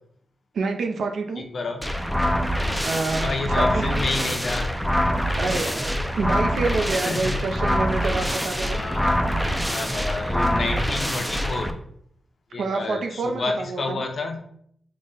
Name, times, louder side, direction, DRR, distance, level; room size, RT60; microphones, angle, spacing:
voice 1, 0.5-1.4 2.9-4.0 5.4-8.8 12.6-14.1, right 3 dB, 75° right, 4 dB, 0.4 m, -27 dB
voice 2, 1.4-1.8 3.2-4.7 7.0-7.5 8.7-9.1 9.7-11.7 12.5-14.4, left 3 dB, 55° left, 5 dB, 0.6 m, -29 dB
sound 1, 1.8-11.7, equal, ahead, 0.3 m, -24 dB
3.9 x 2.1 x 3.7 m, 0.68 s
wide cardioid pair, 100°, 0 cm